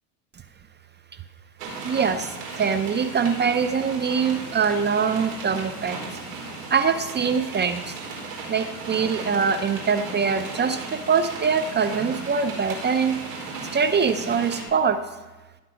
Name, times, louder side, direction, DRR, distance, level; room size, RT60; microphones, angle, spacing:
sound 1, 1.6-14.6, right 3 dB, 75° right, 4.8 m, -36 dB
voice 1, 1.8-6.2 6.7-8.0 8.5-13.2 13.7-15.0, right 6 dB, 20° right, 11 dB, 0.5 m, -23 dB
16.5 x 5.8 x 6.2 m, 1.2 s
hypercardioid pair, 85°, 48 cm